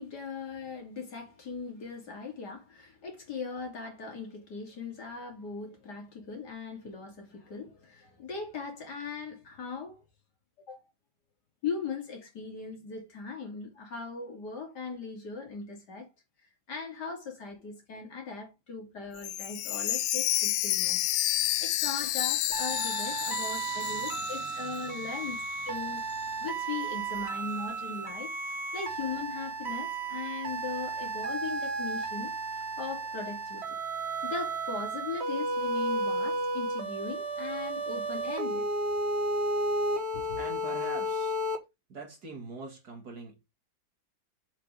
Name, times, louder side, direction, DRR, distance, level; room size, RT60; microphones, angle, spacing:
voice 1, 0.0-10.0 10.7-10.8 11.6-16.1 16.7-21.0 21.6-25.4 25.6-26.0 26.4-28.3 28.7-32.3 32.8-33.8 34.2-38.7 40.1-40.4, left 5 dB, 60° left, 3.3 m, -39 dB
Chime, 19.2-25.1 25.4-25.5 26.1-26.2, left 14 dB, 85° left, 1.4 m, -30 dB
voice 2, 21.2-21.7 23.0-26.0 26.2-26.5 40.4-41.4 41.9-43.3, right 2 dB, 55° right, 2.6 m, -46 dB
sound 1, 22.5-41.6, right 2 dB, 35° right, 1.6 m, -33 dB
7.4 x 5.0 x 4.8 m
omnidirectional pair, 2.1 m